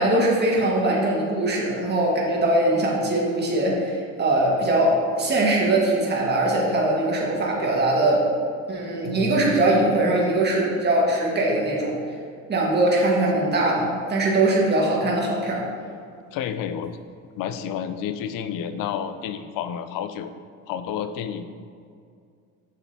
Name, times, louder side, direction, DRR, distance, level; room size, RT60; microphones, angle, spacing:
voice 1, 0.0-8.3 8.7-12.0 12.5-15.7, right 1 dB, 30° right, -3 dB, 1.6 m, -21 dB
voice 2, 9.0-9.6 16.3-17.0 17.3-20.3 20.7-21.6, left 8 dB, 70° left, 10 dB, 0.6 m, -30 dB
7.1 x 6.4 x 2.8 m, 2.3 s
cardioid pair, 110°, 34 cm